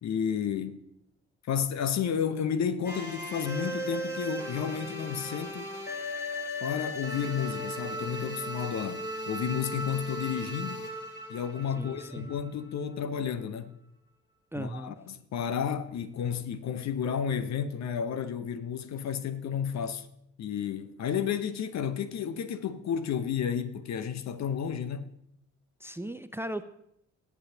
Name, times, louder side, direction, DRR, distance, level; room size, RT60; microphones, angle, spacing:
voice 1, 0.0-0.8 1.5-5.7 6.6-10.8 11.3-13.8 14.5-20.1 20.4-25.1, left 8 dB, 50° left, 0.8 m, -32 dB
sound 1, 2.8-12.8, equal, 30° left, 3.2 m, -37 dB
voice 2, 11.8-12.3 14.5-15.0 25.8-26.6, right 1 dB, 5° right, 0.6 m, -37 dB
20.5 x 8.3 x 2.8 m
figure-of-eight pair, 40°, 35 cm